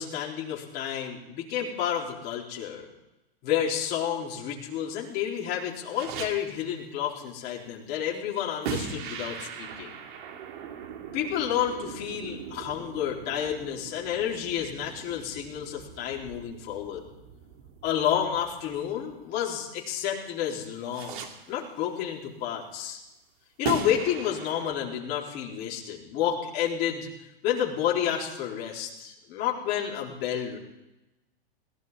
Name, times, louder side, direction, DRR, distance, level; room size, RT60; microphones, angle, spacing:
voice 1, 0.0-2.9 3.4-9.9 11.1-17.0 17.8-23.0 23.6-27.1 27.4-30.6, left 9 dB, 35° left, -2 dB, 3.8 m, -30 dB
sound 1, 5.9-6.8 8.6-19.6 20.9-21.7 23.6-24.8, right 7 dB, 55° right, 2.3 m, -39 dB
22.0 x 16.5 x 3.7 m, 0.97 s
supercardioid pair, 155°, 30 cm